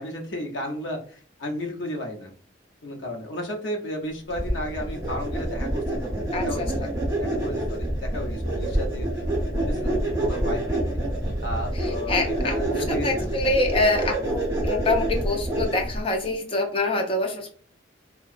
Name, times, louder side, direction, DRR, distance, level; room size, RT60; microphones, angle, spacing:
voice 1, 0.0-2.3 2.8-6.9 7.2-9.1 9.5-11.0 11.4-13.3, equal, 80° left, 2 dB, 0.7 m, -33 dB
sound 1, 4.3-16.0, right 1 dB, 15° right, 0.7 m, -27 dB
voice 2, 6.3-6.7 11.7-17.6, left 2 dB, 30° left, 3 dB, 0.5 m, -26 dB
2.7 x 2.2 x 2.4 m, 0.43 s
head